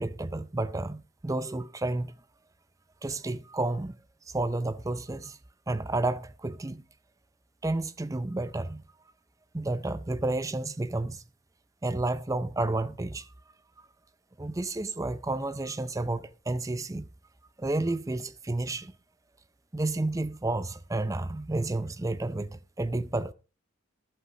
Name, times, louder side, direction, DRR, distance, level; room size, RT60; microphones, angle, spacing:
voice 1, 0.0-2.1 3.0-4.0 4.3-5.4 5.7-6.8 7.6-8.8 9.5-11.2 11.8-13.3 14.4-17.1 17.6-18.9 19.7-23.3, right 2 dB, 15° right, 0.4 m, -31 dB
11.5 x 7.6 x 4.8 m
head